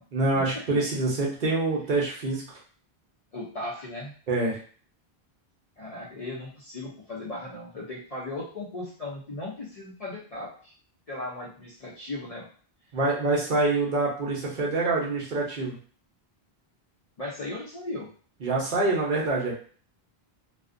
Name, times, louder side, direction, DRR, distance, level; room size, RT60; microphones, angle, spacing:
voice 1, 0.1-2.4 4.3-4.6 12.9-15.8 18.4-19.5, right 2 dB, 55° right, -3 dB, 0.8 m, -26 dB
voice 2, 3.3-4.1 5.8-10.7 11.1-12.5 17.2-18.1, left 2 dB, 45° left, -5 dB, 0.5 m, -37 dB
2.4 x 2.1 x 2.4 m, 0.43 s
omnidirectional pair, 1.0 m